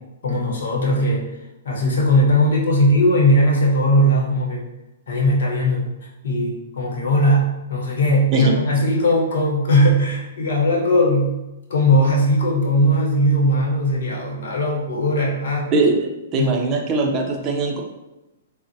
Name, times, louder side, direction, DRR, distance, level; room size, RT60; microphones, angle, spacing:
voice 1, 0.2-1.3 1.6-4.7 5.1-5.9 6.2-11.4 11.7-15.7 16.4-16.5, equal, 70° left, -2 dB, 0.8 m, -18 dB
voice 2, 15.7-17.8, right 3 dB, 30° right, 2 dB, 0.5 m, -21 dB
3.6 x 2.0 x 2.6 m, 0.99 s
hypercardioid pair, 125°, 0 cm